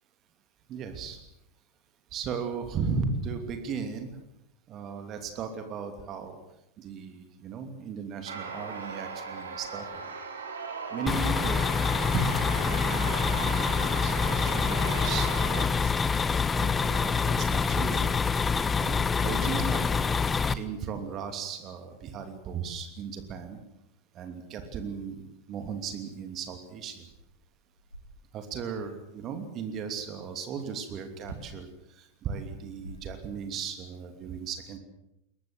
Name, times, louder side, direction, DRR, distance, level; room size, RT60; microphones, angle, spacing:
voice 1, 0.7-1.2 2.1-4.1 4.7-6.4 6.8-10.0 10.9-15.9 16.6-18.1 18.8-20.2 20.5-23.6 24.1-27.0 28.3-31.7 31.9-34.8, right 6 dB, 30° right, 7 dB, 2.8 m, -36 dB
sound 1, 8.3-15.7, right 4 dB, 65° right, 4.0 m, -38 dB
sound 2, 11.1-20.5, left 5 dB, 15° left, 1.0 m, -26 dB
sound 3, 26.7-26.8 27.1-28.6 31.2-31.6 32.5-33.7, left 1 dB, 90° left, 3.7 m, -48 dB
21.5 x 20.5 x 8.0 m, 0.86 s
figure-of-eight pair, 90°, 0 cm